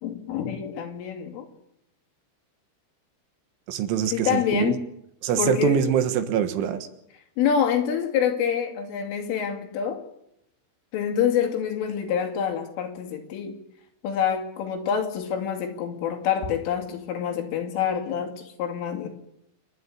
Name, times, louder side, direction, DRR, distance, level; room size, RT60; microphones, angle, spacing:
voice 1, 0.0-1.5 4.1-4.9 5.4-5.8 7.4-10.0 10.9-13.6 14.0-19.1, left 8 dB, 80° left, 4 dB, 5.2 m, -26 dB
voice 2, 3.7-4.7 5.2-6.9, right 9 dB, 80° right, 10 dB, 3.8 m, -24 dB
28.0 x 11.0 x 8.7 m, 0.79 s
omnidirectional pair, 5.6 m